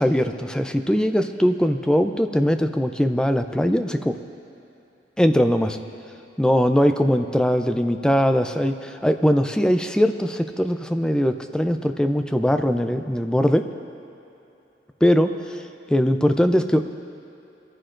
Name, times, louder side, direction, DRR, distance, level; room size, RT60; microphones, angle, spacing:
voice 1, 0.0-4.2 5.2-5.8 6.4-13.7 15.0-15.3 15.9-16.8, equal, 5° left, 7 dB, 0.4 m, -20 dB
22.5 x 14.0 x 2.6 m, 2.8 s
head